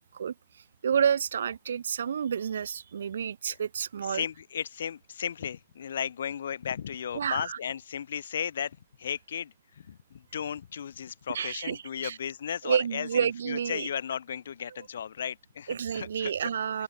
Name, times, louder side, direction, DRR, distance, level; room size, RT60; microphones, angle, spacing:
voice 1, 0.0-4.3 7.1-7.6 11.3-12.2 12.6-13.9 14.7-14.9 15.7-16.8, right 7 dB, 60° right, 4.0 m, -30 dB
voice 2, 4.1-16.5, left 8 dB, 60° left, 5.4 m, -35 dB
open air
figure-of-eight pair, 115°, 0 cm